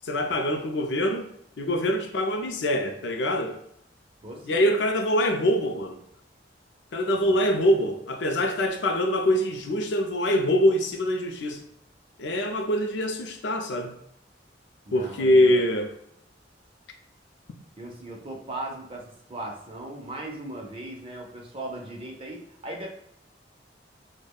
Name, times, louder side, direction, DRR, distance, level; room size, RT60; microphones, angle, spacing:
voice 1, 0.0-1.3 1.6-3.6 4.4-6.0 6.9-11.6 12.2-13.9 14.9-15.9, left 1 dB, 75° left, 5 dB, 0.5 m, -24 dB
voice 2, 4.2-4.7 7.2-7.5 14.9-15.7 17.8-22.9, right 1 dB, 30° right, 0 dB, 0.7 m, -38 dB
5.0 x 2.1 x 2.3 m, 0.72 s
head